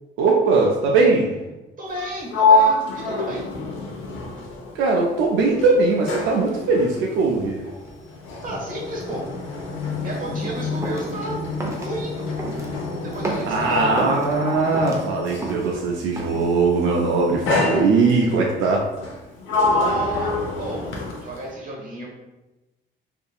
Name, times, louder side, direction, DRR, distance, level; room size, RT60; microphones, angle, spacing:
voice 1, 0.2-1.4 4.7-7.6 13.5-18.9, right 3 dB, 85° right, -1 dB, 0.4 m, -20 dB
voice 2, 1.8-3.5 8.4-9.3 10.0-11.4 11.8-12.3 13.0-14.0 19.7-20.9 21.2-22.1, right 1 dB, 40° right, -3 dB, 1.0 m, -32 dB
Sliding door, 1.9-5.2 5.5-15.6 16.5-16.8 17.5-18.4 19.0-21.5, left 2 dB, 80° left, 0.7 m, -26 dB
sound 1, 10.8-11.1 11.6-11.9 12.4-12.7 13.1-14.2 14.6-15.7 16.2-16.5, right 2 dB, 15° right, 0.5 m, -30 dB
2.7 x 2.6 x 2.3 m, 1.1 s
cardioid pair, 90°, 20 cm